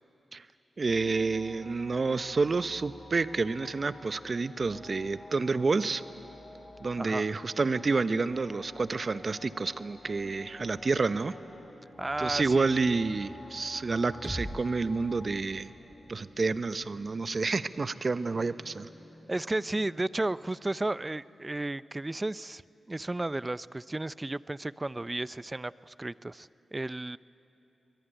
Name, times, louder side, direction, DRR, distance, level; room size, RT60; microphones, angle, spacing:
sound 1, 0.8-15.4, left 2 dB, 40° left, 3.1 m, -50 dB
voice 1, 0.8-6.0 6.8-11.4 12.2-15.7 16.1-18.9, right 4 dB, 50° right, 13 dB, 0.8 m, -29 dB
voice 2, 7.0-7.3 12.0-12.7 19.3-22.6 22.9-27.2, right 2 dB, 25° right, 18 dB, 0.5 m, -33 dB
sound 2, 10.5-21.1, left 1 dB, 20° left, 3.9 m, -56 dB
sound 3, 14.2-18.2, equal, 5° right, 1.7 m, -44 dB
23.5 x 21.5 x 9.1 m, 3.0 s
cardioid pair, 45°, 0 cm